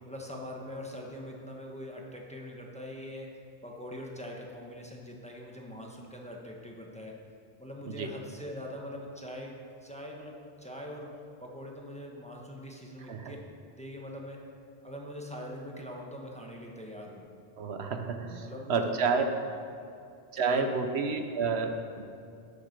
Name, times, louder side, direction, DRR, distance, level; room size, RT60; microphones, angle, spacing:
voice 1, 0.0-3.3 3.6-7.1 7.6-9.5 9.8-11.1 11.4-13.4 13.8-14.4 14.8-17.2 18.4-19.2 19.5-19.6 20.3-20.7, equal, 5° left, -1 dB, 1.2 m, -42 dB
voice 2, 17.6-19.2 20.3-22.0, right 5 dB, 75° right, 6 dB, 1.0 m, -30 dB
9.8 x 6.7 x 6.6 m, 2.5 s
omnidirectional pair, 1.1 m